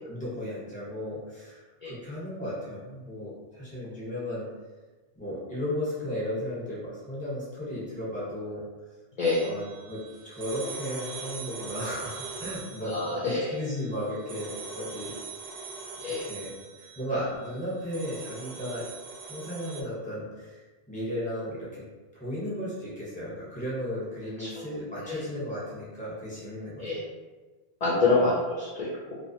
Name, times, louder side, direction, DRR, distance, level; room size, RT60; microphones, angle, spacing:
voice 1, 0.1-4.5 5.2-8.7 9.4-15.2 15.5-15.6 16.2-18.8 19.3-20.6 20.9-21.8 22.1-26.9, equal, 5° left, -9 dB, 0.9 m, -35 dB
sound 1, 9.2-19.8, right 4 dB, 65° right, 0.7 m, -42 dB
voice 2, 12.9-13.6 16.0-16.2 24.4-24.5 25.1-25.2 26.8-27.0 27.8-29.2, left 3 dB, 50° left, -7 dB, 0.5 m, -26 dB
2.3 x 2.2 x 2.7 m, 1.3 s
omnidirectional pair, 1.2 m